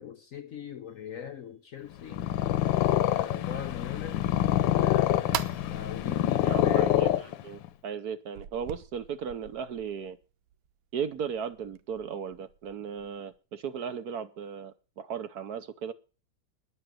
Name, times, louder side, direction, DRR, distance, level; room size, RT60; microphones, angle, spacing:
voice 1, 0.0-2.2 3.0-4.3 4.7-7.0, left 8 dB, 60° left, 0.9 m, -41 dB
sound 1, 0.9-1.2 1.7-1.8 2.3-2.4 2.8-3.6 4.0-4.1 4.5-4.6 5.1-6.2 6.7-6.8 7.3-7.4 7.9-8.0 8.3-13.4, right 11 dB, 90° right, 1.5 m, -42 dB
Purr, 2.0-7.7, left 13 dB, 80° left, 1.5 m, -26 dB
voice 2, 6.4-10.2 10.9-15.9, right 7 dB, 60° right, 1.2 m, -36 dB
10.0 x 7.8 x 7.7 m
omnidirectional pair, 2.1 m